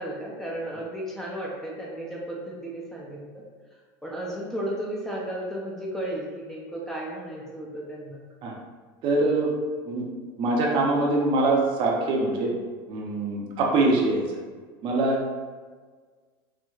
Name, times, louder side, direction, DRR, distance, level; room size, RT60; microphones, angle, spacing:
voice 1, 0.0-3.2 4.0-8.2, right 1 dB, 5° left, -4 dB, 0.5 m, -34 dB
voice 2, 9.0-9.5 9.8-10.1 10.4-12.5 12.9-14.2 14.8-15.4, right 2 dB, 50° right, -1 dB, 0.6 m, -23 dB
4.4 x 2.1 x 2.3 m, 1.5 s
supercardioid pair, 135°, 12 cm